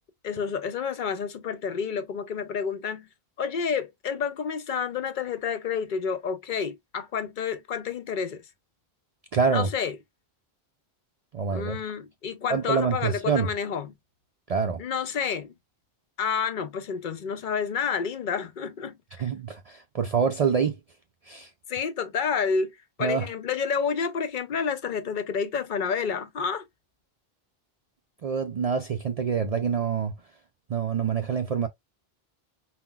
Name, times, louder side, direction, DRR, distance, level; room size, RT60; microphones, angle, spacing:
voice 1, 0.2-3.1 3.4-8.4 9.5-10.0 11.5-13.9 14.8-15.5 16.2-19.0 21.7-26.7, left 6 dB, 55° left, 0.7 m, -29 dB
voice 2, 9.3-9.7 11.3-11.8 12.5-13.5 14.5-14.8 19.2-20.8 21.2-21.5 23.0-23.3 28.2-30.1 30.7-31.7, right 6 dB, 50° right, 0.5 m, -26 dB
5.6 x 2.1 x 2.2 m
omnidirectional pair, 1.1 m